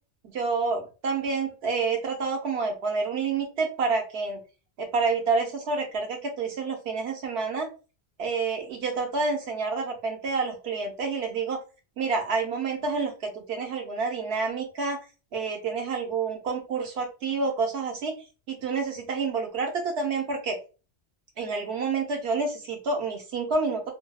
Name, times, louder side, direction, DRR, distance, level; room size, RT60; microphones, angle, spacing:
voice 1, 0.2-4.4 4.8-7.7 8.2-11.6 12.0-15.0 15.3-18.2 18.5-20.6 21.4-23.9, right 4 dB, 75° right, 3 dB, 1.0 m, -28 dB
2.6 x 2.1 x 2.2 m, 0.32 s
omnidirectional pair, 1.1 m